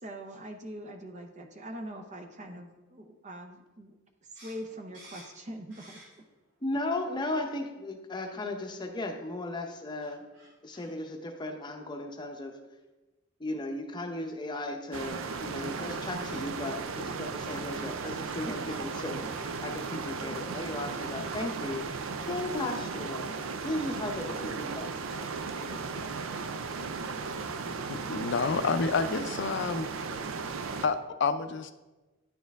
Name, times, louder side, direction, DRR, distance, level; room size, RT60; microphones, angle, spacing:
voice 1, 0.0-4.0 4.3-6.0, right 1 dB, 35° right, 5 dB, 0.6 m, -43 dB
sound 1, 4.3-6.4 6.8-7.5 8.1-8.4 8.6-8.8 9.6-9.7 9.9-10.9, right 1 dB, 65° right, 2.3 m, -54 dB
voice 2, 6.6-10.2 10.6-12.5 13.4-23.3 23.6-25.3 25.6-26.1, left 2 dB, 20° left, 4 dB, 0.7 m, -36 dB
sound 2, 14.9-30.9, right 4 dB, 85° right, 0.5 m, -36 dB
voice 3, 27.9-29.9 30.8-31.7, left 4 dB, 60° left, 11 dB, 0.4 m, -29 dB
9.7 x 4.4 x 3.5 m, 1.1 s
head